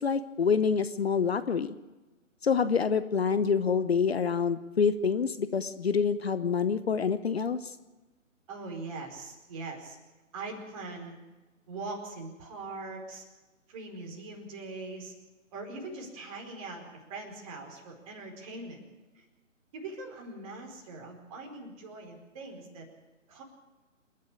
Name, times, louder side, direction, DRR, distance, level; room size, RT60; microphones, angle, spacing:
voice 1, 0.0-1.8 2.4-7.7, left 6 dB, 50° left, 13 dB, 1.0 m, -27 dB
voice 2, 8.5-10.0 10.3-11.2 11.7-13.2 13.7-15.1 15.5-18.8 19.1-19.2 19.7-22.8 23.3-23.4, right 3 dB, 25° right, 1 dB, 4.7 m, -41 dB
28.0 x 11.5 x 8.6 m, 1.2 s
figure-of-eight pair, 150°, 39 cm